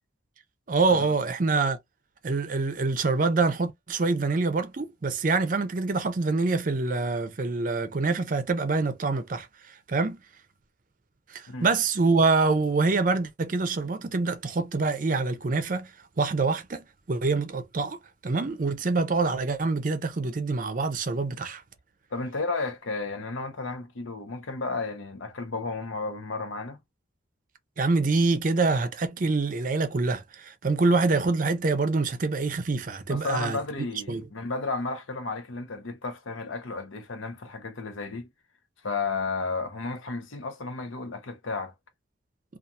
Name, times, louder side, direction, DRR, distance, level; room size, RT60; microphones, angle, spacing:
voice 1, 0.7-1.8 2.2-9.5 9.9-10.2 11.3-15.9 16.2-18.0 18.2-21.6 27.8-33.6 34.1-34.2, right 3 dB, 40° right, 0.5 m, -25 dB
voice 2, 22.1-26.8 33.1-38.3 38.8-41.7, left 3 dB, 85° left, 0.7 m, -33 dB
2.7 x 2.4 x 2.3 m
head